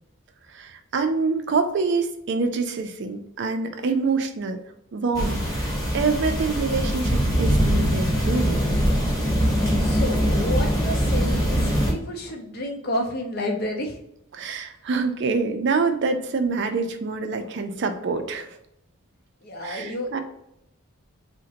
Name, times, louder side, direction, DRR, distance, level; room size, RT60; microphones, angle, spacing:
voice 1, 0.5-4.6 4.9-8.6 14.3-18.5 19.6-20.2, right 4 dB, 50° right, 7 dB, 0.4 m, -26 dB
sound 1, 5.1-11.9, equal, 15° left, 0.9 m, -22 dB
voice 2, 9.8-14.0 19.4-20.2, left 1 dB, 45° left, 2 dB, 0.6 m, -30 dB
3.7 x 2.1 x 2.8 m, 0.78 s
head